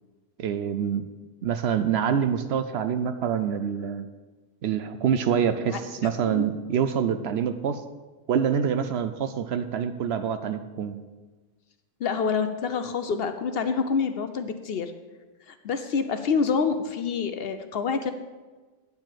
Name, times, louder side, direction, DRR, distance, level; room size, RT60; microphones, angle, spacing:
voice 1, 0.4-1.1 1.4-4.1 4.6-7.8 8.3-11.0, right 8 dB, 65° right, 9 dB, 0.7 m, -26 dB
voice 2, 12.0-14.9 15.5-18.1, left 5 dB, 60° left, 9 dB, 0.7 m, -27 dB
9.6 x 4.8 x 7.4 m, 1.3 s
omnidirectional pair, 1.3 m